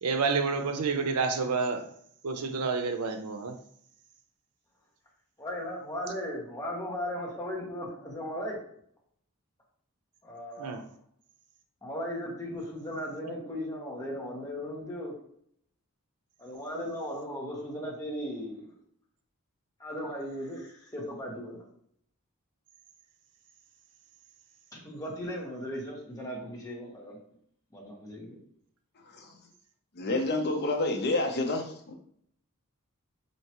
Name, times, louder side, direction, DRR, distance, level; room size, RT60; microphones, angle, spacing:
voice 1, 0.0-1.9 2.2-3.6 10.6-10.8, right 4 dB, 85° right, 7 dB, 0.5 m, -29 dB
voice 2, 5.4-8.6 10.2-10.8 11.8-15.1 16.4-18.7 19.8-21.6 24.7-27.2 27.7-28.4, equal, 15° left, -3 dB, 1.0 m, -37 dB
voice 3, 29.9-31.9, left 2 dB, 45° left, 2 dB, 0.7 m, -29 dB
4.5 x 2.8 x 2.9 m, 0.66 s
head